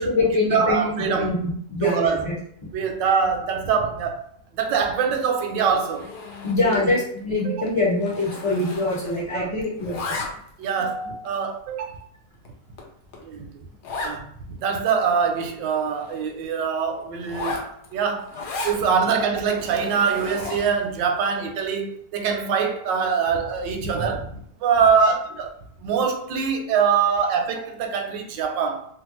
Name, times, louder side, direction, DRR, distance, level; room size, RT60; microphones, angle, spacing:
voice 1, 0.0-2.3 6.4-10.2 11.0-11.1 27.2-27.3, left 2 dB, 40° left, 1.3 m, -24 dB
voice 2, 0.5-1.3 1.8-2.3 2.7-4.3 4.5-6.1 6.6-6.9 7.4-7.6 9.3-9.5 10.6-12.0 13.2-13.5 14.0-18.3 18.6-25.5 25.8-28.9, right 6 dB, 85° right, 1.3 m, -24 dB
Zipper (clothing), 5.9-6.9 7.2-7.4 7.7-9.4 9.6-10.6 11.2-11.3 11.9-12.0 12.4-12.5 12.8-12.9 13.1-13.2 13.8-14.2 14.6-14.7 14.9-16.2 17.2-18.8 19.4-20.8, left 3 dB, 70° left, 1.1 m, -35 dB
3.1 x 2.3 x 3.0 m
omnidirectional pair, 1.9 m